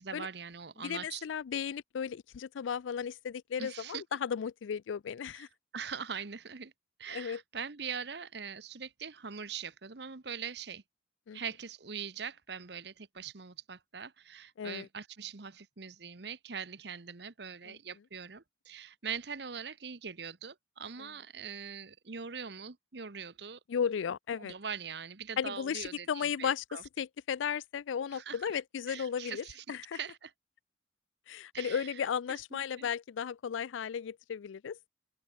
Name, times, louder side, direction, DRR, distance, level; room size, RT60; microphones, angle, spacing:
voice 1, 0.0-1.3 3.6-4.0 5.3-5.5 5.7-6.7 7.0-10.8 11.3-23.6 24.4-26.8 28.1-28.6 28.9-30.3 31.5-31.9 32.3-32.9, right 6 dB, 60° right, 1.0 m, -42 dB
voice 2, 0.8-5.5 7.1-7.4 11.3-11.4 14.6-14.9 17.7-17.8 21.0-21.1 23.7-24.5 25.4-30.0 31.3-34.8, left 7 dB, 85° left, 0.4 m, -35 dB
open air
head